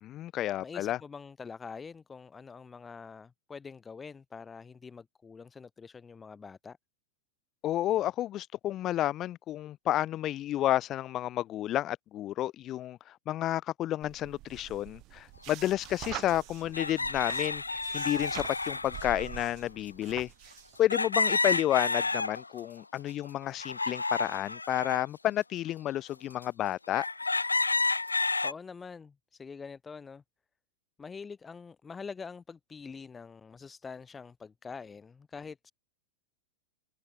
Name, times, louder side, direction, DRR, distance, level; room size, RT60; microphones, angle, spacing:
voice 1, 0.0-1.0 7.6-13.0 13.3-20.3 20.8-27.1, left 13 dB, 30° left, 0.5 m, -31 dB
voice 2, 0.6-6.8 28.4-30.2 31.0-35.7, left 5 dB, 15° left, 2.5 m, -45 dB
sound 1, 14.0-20.8, right 19 dB, 40° right, 3.6 m, -45 dB
sound 2, 15.6-15.7 16.7-19.5 20.9-22.7 23.1-25.0 25.7-25.8 26.4-26.5 26.9-28.5, left 3 dB, 80° left, 0.8 m, -30 dB
figure-of-eight pair, 90°, 0 cm